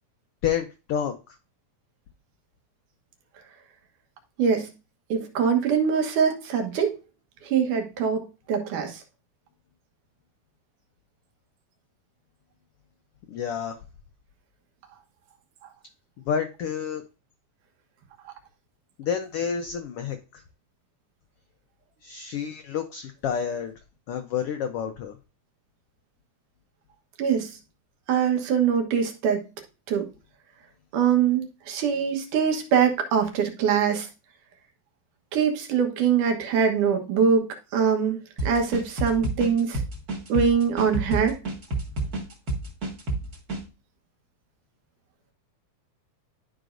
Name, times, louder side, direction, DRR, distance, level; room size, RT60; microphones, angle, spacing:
voice 1, 0.4-1.1 13.3-13.8 16.3-17.0 19.0-20.4 22.0-23.7 24.1-25.1, left 8 dB, 85° left, 1.3 m, -29 dB
voice 2, 4.4-4.7 5.1-6.9 7.4-9.0 18.3-18.4 27.2-27.6 28.1-29.5 29.9-30.1 30.9-34.1 35.3-37.5 37.7-39.8 40.3-41.4, right 7 dB, 80° right, 2.8 m, -23 dB
sound 1, 38.4-43.6, right 2 dB, 35° right, 1.8 m, -29 dB
12.5 x 5.1 x 2.5 m
omnidirectional pair, 3.5 m